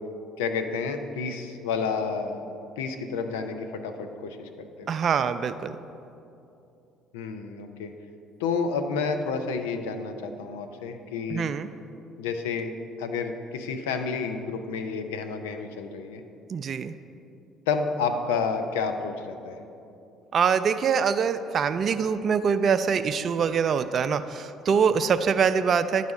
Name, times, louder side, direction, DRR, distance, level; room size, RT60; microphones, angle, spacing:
voice 1, 0.4-2.4 2.8-4.9 7.1-7.9 8.4-11.5 12.2-16.2 17.7-19.6, left 5 dB, 85° left, 7 dB, 0.5 m, -30 dB
voice 2, 4.9-5.8 11.3-11.7 16.5-16.9 20.3-26.1, right 6 dB, 50° right, 11 dB, 0.3 m, -24 dB
10.5 x 4.1 x 4.7 m, 2.7 s
hypercardioid pair, 65°, 0 cm